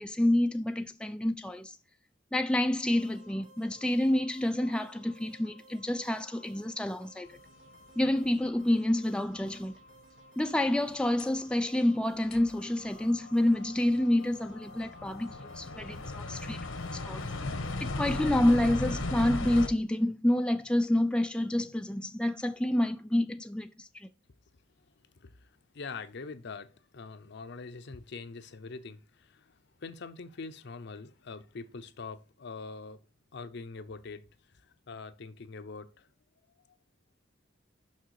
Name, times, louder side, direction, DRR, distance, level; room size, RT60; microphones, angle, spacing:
voice 1, 0.0-1.8 2.3-7.4 8.0-9.7 10.4-16.6 16.9-17.2 17.8-24.1, left 1 dB, 5° left, 0.3 m, -28 dB
sound 1, 2.8-18.6, right 1 dB, 80° right, 1.8 m, -58 dB
sound 2, 8.5-8.6 11.2-11.3 11.9-12.0 12.3-19.7, left 2 dB, 90° left, 1.2 m, -37 dB
voice 2, 25.1-33.0 33.3-36.1, left 4 dB, 60° left, 0.6 m, -44 dB
6.4 x 6.0 x 4.7 m
head